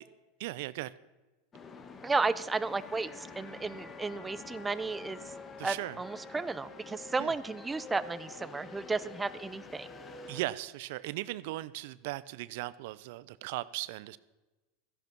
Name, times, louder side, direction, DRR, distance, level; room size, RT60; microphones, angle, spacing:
voice 1, 0.4-0.9 5.6-6.0 7.2-7.3 10.3-14.2, right 17 dB, 70° right, 17 dB, 0.5 m, -37 dB
sound 1, 1.5-10.4, left 4 dB, 25° left, 1.3 m, -47 dB
voice 2, 2.0-5.2 5.6-9.9, right 3 dB, 15° right, 15 dB, 0.5 m, -33 dB
13.5 x 11.0 x 5.9 m, 1.1 s
supercardioid pair, 125°, 0 cm